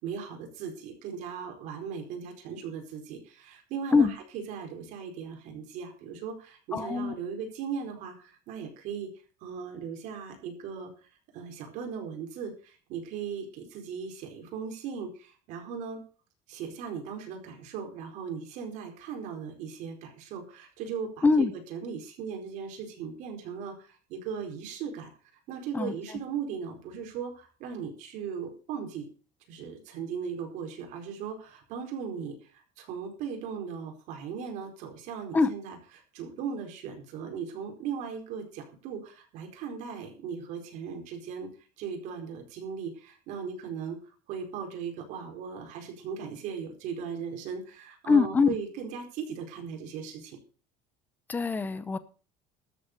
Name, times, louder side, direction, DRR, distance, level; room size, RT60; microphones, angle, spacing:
voice 1, 0.0-9.1 9.4-10.9 11.3-16.0 16.5-25.1 25.5-29.1 29.5-35.8 36.1-41.5 41.8-44.0 44.3-50.4, right 6 dB, 60° right, 3 dB, 4.6 m, -38 dB
voice 2, 6.7-7.1 21.2-21.5 25.7-26.2 35.3-35.5 48.1-48.5 51.3-52.0, left 4 dB, 10° left, 14 dB, 0.8 m, -23 dB
13.0 x 7.8 x 6.7 m, 0.38 s
cardioid pair, 170°, 14 cm